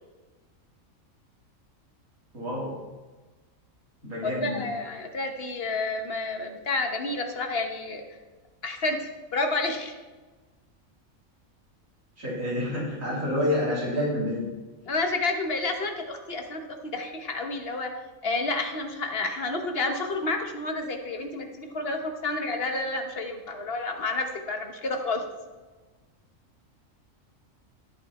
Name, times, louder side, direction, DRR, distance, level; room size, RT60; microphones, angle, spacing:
voice 1, 2.3-2.7 4.0-4.6 12.2-14.4, left 1 dB, 80° right, -7 dB, 3.8 m, -28 dB
voice 2, 4.2-8.0 8.6-9.0 9.3-9.9 14.9-16.6 16.9-17.9 18.2-25.2, left 3 dB, 50° left, 4 dB, 1.5 m, -30 dB
13.5 x 8.1 x 4.3 m, 1.3 s
omnidirectional pair, 1.4 m